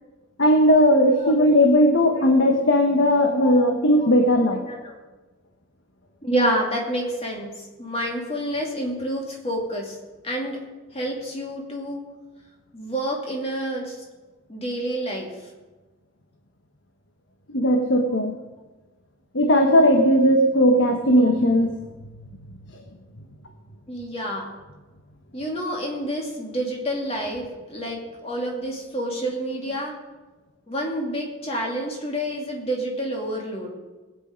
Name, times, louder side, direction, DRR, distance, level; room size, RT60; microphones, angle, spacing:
voice 1, 0.4-4.6 17.5-18.4 19.3-21.8, equal, 60° left, 3 dB, 1.1 m, -17 dB
voice 2, 6.2-10.0 10.2-10.6 10.9-12.1 12.7-14.0 14.5-15.5 23.9-24.5 25.3-30.0 30.7-33.7, equal, 30° left, -1 dB, 2.6 m, -28 dB
19.0 x 8.5 x 5.1 m, 1.2 s
head